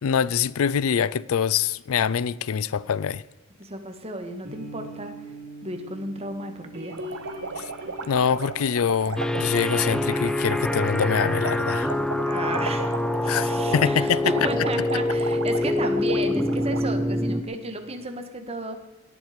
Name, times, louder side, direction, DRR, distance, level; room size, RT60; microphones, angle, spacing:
voice 1, 0.0-3.2 7.6-7.7 8.1-12.0 13.3-14.2, left 7 dB, 65° left, 0.4 m, -24 dB
voice 2, 3.6-5.1 5.6-7.0 12.2-18.8, right 1 dB, 25° right, 1.7 m, -33 dB
sound 1, 3.8-9.6 9.9-13.3, right 1 dB, 50° right, 5.7 m, -43 dB
sound 2, 6.9-16.9, right 4 dB, 70° right, 1.2 m, -36 dB
sound 3, 9.2-17.4, left 1 dB, 5° left, 0.4 m, -25 dB
18.5 x 11.0 x 5.2 m
head